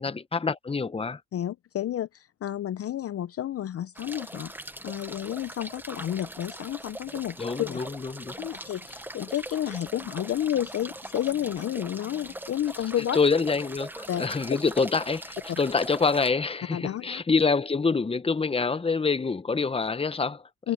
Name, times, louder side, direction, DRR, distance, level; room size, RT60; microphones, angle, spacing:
voice 1, 0.0-1.2 7.4-8.3 13.1-20.5, left 4 dB, 20° left, 1.0 m, -26 dB
voice 2, 1.3-4.5 4.8-7.8 8.4-13.2 14.1-14.3 16.7-17.2 20.6-20.7, left 11 dB, 50° left, 0.6 m, -31 dB
sound 1, 3.9-16.3, right 1 dB, 5° right, 1.1 m, -41 dB
cardioid pair, 90°, 30 cm